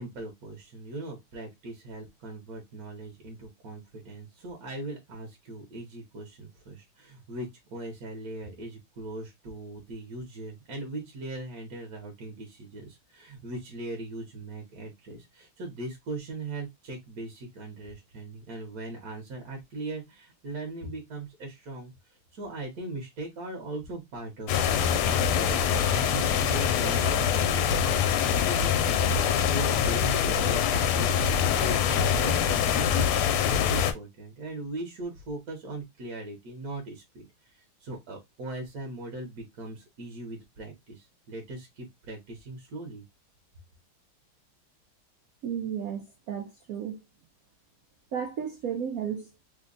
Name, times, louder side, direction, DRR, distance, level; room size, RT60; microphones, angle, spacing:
voice 1, 0.0-43.0, right 2 dB, 55° right, 1.2 m, -39 dB
sound 1, 24.5-33.9, left 8 dB, 85° left, 1.5 m, -24 dB
voice 2, 45.4-47.0 48.1-49.4, right 8 dB, 90° right, 0.7 m, -33 dB
3.5 x 2.2 x 3.8 m
omnidirectional pair, 2.4 m